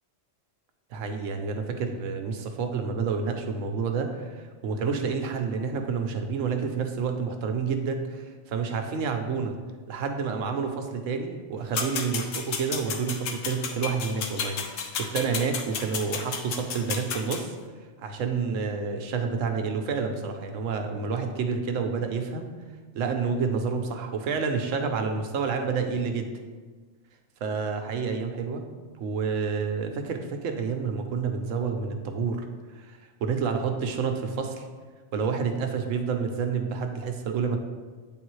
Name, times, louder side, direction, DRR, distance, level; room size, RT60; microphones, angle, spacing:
voice 1, 0.9-9.6 9.9-17.5 18.0-22.5 22.9-26.3 27.4-28.6 29.0-32.4 32.8-34.6 35.1-37.6, right 5 dB, 80° right, 5 dB, 1.0 m, -29 dB
sound 1, 11.7-17.4, left 6 dB, 85° left, 1.0 m, -32 dB
8.7 x 3.6 x 3.1 m, 1.4 s
omnidirectional pair, 1.3 m